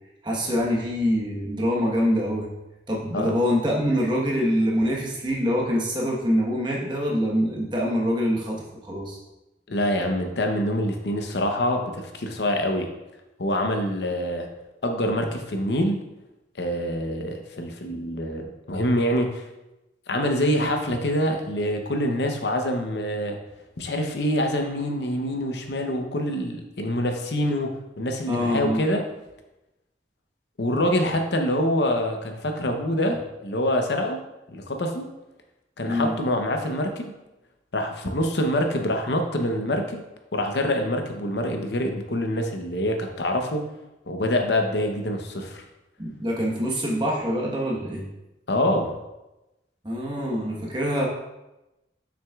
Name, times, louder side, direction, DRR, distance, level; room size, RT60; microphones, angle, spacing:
voice 1, 0.2-2.5 2.9-9.2 28.3-28.8 35.9-36.1 46.0-48.1 49.8-51.1, equal, 25° right, -2 dB, 1.1 m, -25 dB
voice 2, 9.7-12.9 13.4-14.5 14.8-16.0 16.6-19.5 20.1-23.4 23.8-29.0 30.6-34.2 34.5-35.1 35.8-37.1 37.7-40.0 40.3-43.6 44.1-45.6 48.5-49.0, left 1 dB, 70° left, 3 dB, 0.8 m, -25 dB
7.1 x 6.1 x 2.4 m, 0.97 s
head